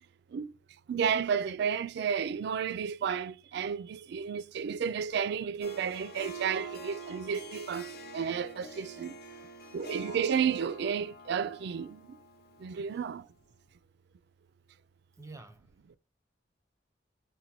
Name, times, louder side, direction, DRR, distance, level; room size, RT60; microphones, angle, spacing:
voice 1, 0.9-9.2 9.7-12.0 12.6-13.2, right 7 dB, 60° right, 0.3 m, -32 dB
Harp, 5.6-13.1, right 2 dB, 55° left, 0.6 m, -45 dB
voice 2, 9.2-9.8 12.9-13.0 15.2-15.7, right 3 dB, 15° right, 0.6 m, -51 dB
4.4 x 2.1 x 2.7 m
head